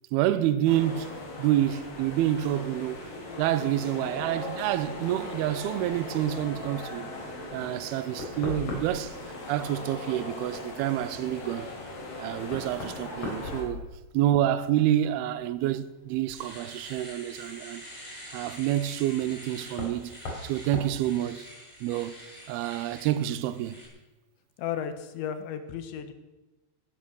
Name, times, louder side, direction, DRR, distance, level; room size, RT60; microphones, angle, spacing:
voice 1, 0.1-1.1 1.4-3.1 3.4-7.1 7.5-9.2 9.5-11.7 12.2-13.8 14.1-17.8 18.3-20.1 20.4-21.4 21.8-22.2 22.5-23.8, right 12 dB, 80° right, 2.5 m, -28 dB
sound 1, 0.6-13.6, left 2 dB, 55° left, 4.9 m, -39 dB
Knock, 8.2-9.2 11.6-11.7 12.5-14.3 14.6-15.2 16.9-17.0 19.7-20.0 20.3-20.5 20.7-21.0, left 2 dB, 40° left, 4.1 m, -37 dB
Domestic sounds home sounds, 15.6-15.7 16.1-23.9, equal, 5° right, 6.6 m, -46 dB
voice 2, 24.6-26.1, left 9 dB, 90° left, 3.7 m, -34 dB
19.5 x 11.0 x 6.4 m
omnidirectional pair, 5.0 m